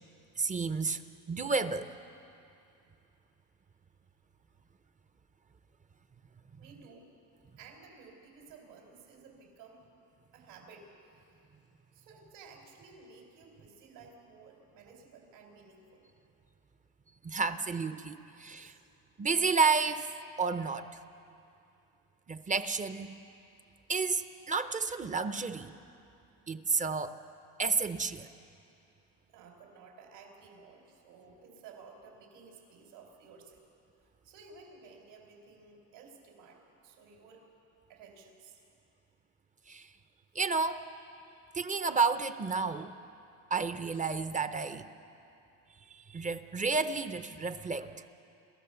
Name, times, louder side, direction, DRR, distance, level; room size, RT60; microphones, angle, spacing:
voice 1, 0.4-1.9 17.2-18.7 19.2-20.1 20.4-21.0 22.3-23.2 23.9-25.7 26.5-27.2 27.6-28.3 39.7-39.9 40.3-40.9 41.5-42.9 43.5-44.9 45.9-48.0, right 4 dB, 20° right, 11 dB, 0.6 m, -31 dB
voice 2, 6.6-7.1 7.6-9.9 10.3-11.2 11.9-16.1 18.4-18.8 29.3-33.6 34.2-37.5 37.9-38.6, right 4 dB, 80° right, 2 dB, 4.8 m, -54 dB
28.5 x 14.0 x 6.9 m, 2.6 s
cardioid pair, 130°, 41 cm